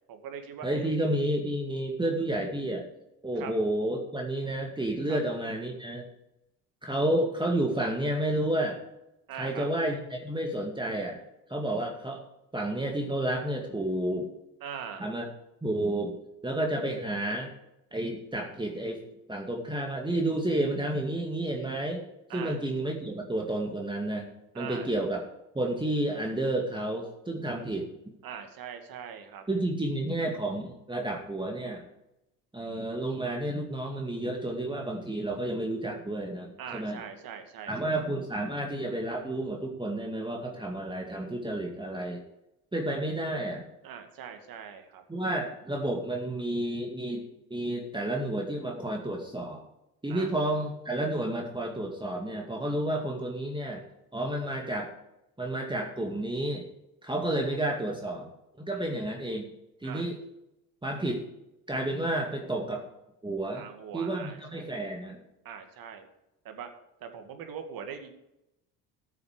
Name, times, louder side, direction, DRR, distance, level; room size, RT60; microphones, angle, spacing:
voice 1, 0.1-0.9 3.4-3.5 5.1-5.2 9.3-9.7 14.6-15.1 22.3-22.6 24.5-24.9 28.2-29.4 36.6-37.9 43.8-45.0 50.1-50.3 58.7-58.9 59.8-60.1 63.5-64.7 65.4-66.1 66.4-66.7 67.0-68.1, right 7 dB, 50° right, 6 dB, 2.2 m, -41 dB
voice 2, 0.6-2.8 3.2-6.1 6.8-8.8 9.3-11.2 11.5-12.2 12.5-14.3 15.0-15.3 15.6-16.2 16.4-17.5 17.9-19.0 19.3-22.0 22.3-25.2 25.5-27.9 29.5-31.9 32.5-37.0 37.7-42.2 42.7-43.7 45.1-49.6 50.0-53.8 54.1-54.9 55.4-56.7 57.0-58.3 58.6-59.5 59.8-60.2 60.8-61.3 61.7-62.9 63.2-63.6 63.9-65.2, right 1 dB, 10° right, 1 dB, 2.2 m, -31 dB
14.0 x 7.2 x 5.0 m, 0.88 s
hypercardioid pair, 60°, 44 cm